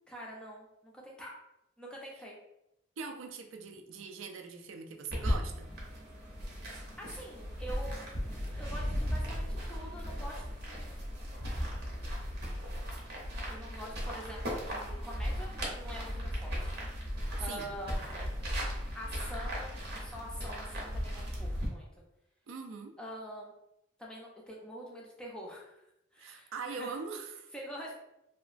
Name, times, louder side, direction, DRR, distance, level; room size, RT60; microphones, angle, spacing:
voice 1, 0.1-1.3 1.8-2.4 7.0-8.0 8.6-11.0 13.5-16.7 17.4-18.5 18.9-21.9 23.0-23.5 24.0-25.8 26.1-27.0 27.5-27.9, equal, 5° left, -3 dB, 0.4 m, -45 dB
voice 2, 3.0-5.7 17.5-17.7 22.5-22.9 26.2-27.5, right 4 dB, 80° right, 4 dB, 0.4 m, -42 dB
sound 1, 5.1-21.7, equal, 55° right, 0.7 m, -36 dB
2.8 x 2.4 x 2.4 m, 0.87 s
head